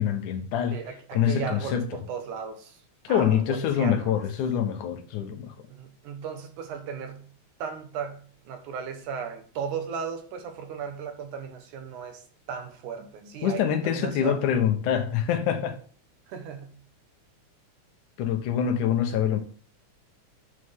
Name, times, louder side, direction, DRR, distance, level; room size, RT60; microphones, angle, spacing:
voice 1, 0.0-0.8 1.1-2.0 3.0-5.5 13.4-15.8 18.2-19.4, left 9 dB, 85° left, 2.5 m, -25 dB
voice 2, 0.7-2.8 3.1-4.2 5.7-7.3 7.6-12.2 12.5-14.4 16.3-16.8, right 6 dB, 90° right, 2.8 m, -36 dB
9.3 x 6.5 x 3.6 m
omnidirectional pair, 3.4 m